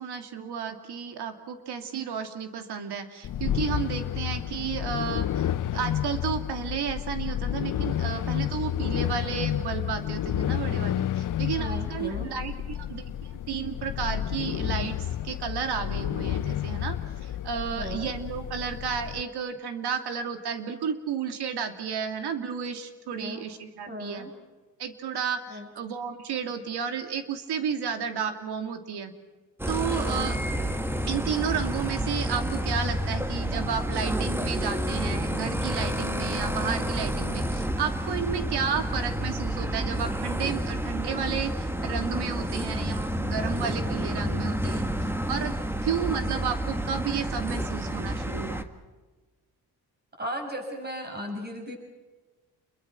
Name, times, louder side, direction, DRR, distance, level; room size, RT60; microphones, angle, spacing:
voice 1, 0.0-24.3 24.8-29.1 29.7-30.4 31.1-45.5 45.8-48.7, right 7 dB, 80° right, 7 dB, 2.7 m, -32 dB
sound 1, 3.2-19.2, left 11 dB, 55° left, 0.7 m, -30 dB
voice 2, 11.6-12.3 17.8-18.1 23.2-23.4 23.9-24.3 25.5-25.7 30.0-30.3 50.2-51.8, equal, 25° right, 3 dB, 7.2 m, -36 dB
sound 2, 29.6-48.6, equal, 5° right, 1.6 m, -29 dB
29.0 x 22.5 x 6.1 m, 1.3 s
cardioid pair, 110°, 39 cm